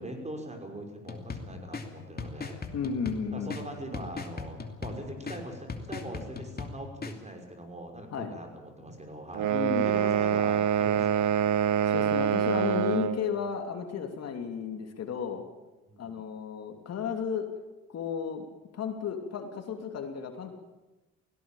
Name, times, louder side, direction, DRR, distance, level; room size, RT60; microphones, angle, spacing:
voice 1, 0.0-2.6 3.3-9.5 9.8-11.3 15.9-16.2, right 1 dB, 25° right, 3 dB, 5.8 m, -41 dB
sound 1, 1.1-7.1, left 4 dB, 30° left, 2.7 m, -40 dB
voice 2, 2.7-3.6 8.1-8.3 9.5-9.9 11.8-15.4 16.0-17.5 17.9-18.4 18.7-20.5, left 6 dB, 60° left, 5 dB, 2.9 m, -33 dB
sound 2, 9.3-13.2, right 9 dB, 75° right, 1.3 m, -25 dB
18.0 x 17.0 x 9.0 m, 1.1 s
supercardioid pair, 75°, 30 cm